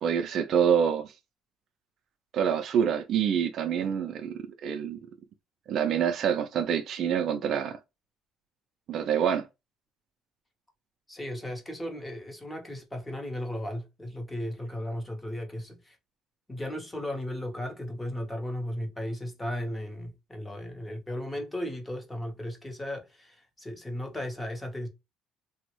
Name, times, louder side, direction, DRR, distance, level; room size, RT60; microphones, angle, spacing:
voice 1, 0.0-1.1 2.3-5.0 5.7-7.8 8.9-9.5, right 8 dB, 45° right, 0.4 m, -26 dB
voice 2, 11.1-15.9 16.5-24.9, left 1 dB, 10° left, 0.7 m, -36 dB
3.4 x 2.0 x 3.0 m
cardioid pair, 165°, 0 cm